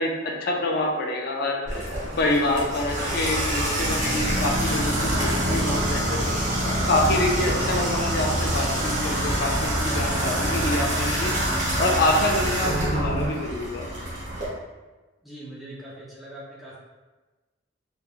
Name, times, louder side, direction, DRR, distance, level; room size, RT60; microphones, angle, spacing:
voice 1, 0.0-6.3 6.6-11.3 11.8-13.9, left 2 dB, 55° left, 1 dB, 0.4 m, -26 dB
Water tap faucet / Bathtub (filling or washing), 1.7-14.5, right 1 dB, 40° right, 0.8 m, -27 dB
sound 1, 2.8-13.3, equal, 70° right, 0.5 m, -30 dB
voice 2, 15.2-16.8, right 1 dB, ahead, -7 dB, 0.5 m, -42 dB
3.0 x 2.2 x 2.4 m, 1.2 s
head